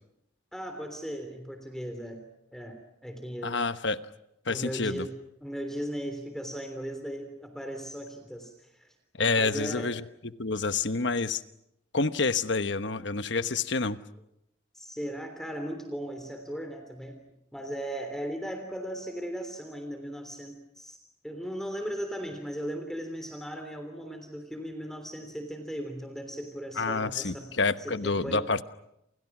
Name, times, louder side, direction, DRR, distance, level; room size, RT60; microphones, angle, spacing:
voice 1, 0.5-2.2 2.5-3.6 4.5-5.1 5.4-8.9 9.4-9.9 14.7-17.2 17.5-21.0 21.2-27.5 27.8-28.5, equal, ahead, 6 dB, 3.3 m, -37 dB
voice 2, 3.4-4.0 4.5-5.1 9.2-10.0 10.4-11.4 11.9-14.0 26.8-28.6, left 4 dB, 70° left, 11 dB, 1.2 m, -28 dB
29.0 x 29.0 x 6.1 m, 0.82 s
head